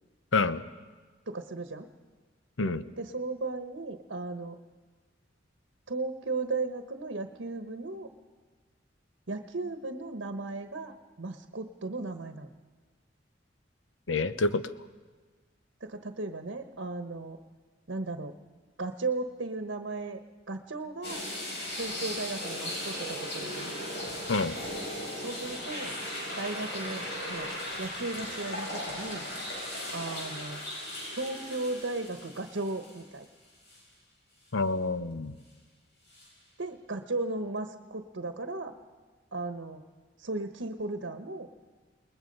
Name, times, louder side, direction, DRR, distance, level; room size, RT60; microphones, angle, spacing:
voice 1, 0.3-0.6 2.6-2.8 14.1-14.6 24.3-24.5 34.5-35.4, left 3 dB, 90° left, 13 dB, 0.8 m, -27 dB
voice 2, 1.3-1.9 3.0-4.6 5.9-8.1 9.3-12.5 15.8-17.4 17.9-18.3 18.8-20.2 20.5-21.2 21.8-23.7 25.2-25.9 26.4-27.5 27.8-29.3 29.9-30.6 31.1-33.3 36.6-38.7 39.3-39.8 40.2-41.5, right 3 dB, 80° right, 7 dB, 1.1 m, -36 dB
sound 1, 21.0-33.2 33.7-33.8 36.1-36.3, left 1 dB, 65° left, 7.5 m, -37 dB
29.0 x 20.5 x 5.4 m, 1.4 s
head